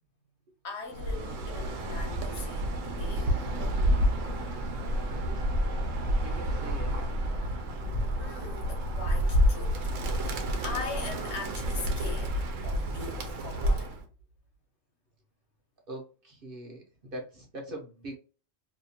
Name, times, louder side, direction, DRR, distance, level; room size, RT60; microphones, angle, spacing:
voice 1, 0.6-3.4 8.2-9.9 10.2-14.0, left 4 dB, 65° left, 1.1 m, -41 dB
Bird, 0.9-14.0, equal, 85° right, 1.0 m, -29 dB
sound 1, 2.3-12.3, right 1 dB, 45° left, 0.6 m, -52 dB
voice 2, 4.5-7.3 7.8-7.9 15.9-18.2, right 1 dB, 50° right, 0.8 m, -44 dB
2.8 x 2.3 x 2.7 m
omnidirectional pair, 1.3 m